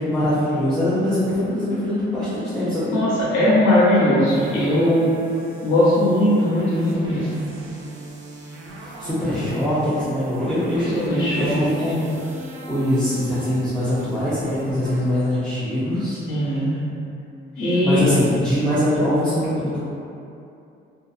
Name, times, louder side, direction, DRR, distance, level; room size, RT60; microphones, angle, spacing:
voice 1, 0.0-3.0 9.0-16.6 17.5-19.8, left 1 dB, 5° left, -13 dB, 0.6 m, -23 dB
voice 2, 2.9-5.1 5.6-7.5 10.9-12.0 16.3-16.7 17.6-18.0, left 1 dB, 85° left, -9 dB, 0.7 m, -19 dB
sound 1, 4.3-15.1, right 1 dB, 80° right, 0.4 m, -37 dB
2.6 x 2.4 x 2.4 m, 2.6 s
cardioid pair, 90°, 20 cm